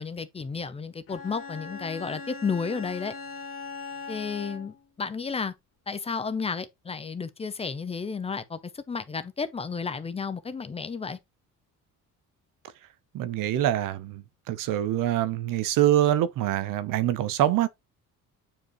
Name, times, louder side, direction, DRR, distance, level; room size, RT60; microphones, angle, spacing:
voice 1, 0.0-3.1 4.1-5.5 5.9-11.2, left 5 dB, 20° left, 0.6 m, -32 dB
Bowed string instrument, 1.1-4.9, left 4 dB, 45° left, 2.0 m, -40 dB
voice 2, 13.1-14.2 14.5-17.7, right 12 dB, 85° right, 0.8 m, -24 dB
8.8 x 5.1 x 3.0 m
cardioid pair, 170°, 32 cm